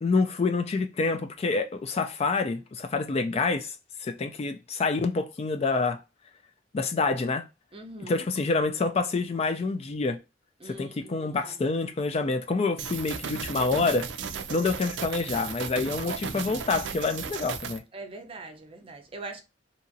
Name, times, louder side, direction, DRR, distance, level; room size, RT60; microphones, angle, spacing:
voice 1, 0.0-3.7 4.0-6.0 6.7-7.4 8.1-10.2 10.7-14.1 14.5-17.8, left 3 dB, 35° left, 0.3 m, -27 dB
voice 2, 7.7-8.3 10.6-11.8 17.9-19.4, right 2 dB, 30° right, 0.6 m, -43 dB
sound 1, 12.8-17.8, right 6 dB, 85° right, 0.4 m, -35 dB
2.8 x 2.5 x 2.6 m
head